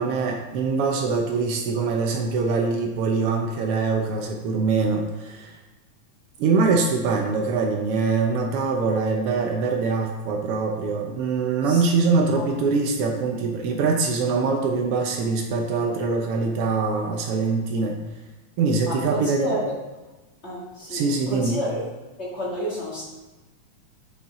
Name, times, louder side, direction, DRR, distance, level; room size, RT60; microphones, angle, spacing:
voice 1, 0.0-5.6 6.4-18.0 18.6-19.5 20.9-21.6, right 4 dB, 85° right, 1 dB, 1.3 m, -23 dB
voice 2, 18.8-19.7 20.4-21.8 22.2-23.0, equal, 25° left, -7 dB, 1.6 m, -30 dB
7.1 x 5.8 x 3.7 m, 1.2 s
omnidirectional pair, 3.5 m